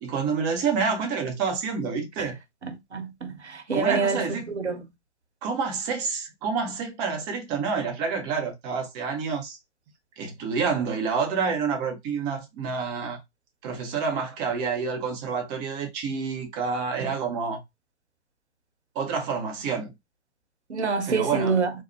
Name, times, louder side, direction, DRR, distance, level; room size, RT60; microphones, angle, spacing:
voice 1, 0.0-2.4 3.7-4.5 5.4-9.6 10.2-13.2 13.6-17.6 19.0-19.9 21.1-21.6, right 5 dB, 10° right, 0.5 m, -28 dB
voice 2, 2.9-4.8 20.7-21.7, right 4 dB, 75° right, 1.0 m, -26 dB
3.9 x 2.1 x 3.1 m
figure-of-eight pair, 120°, 34 cm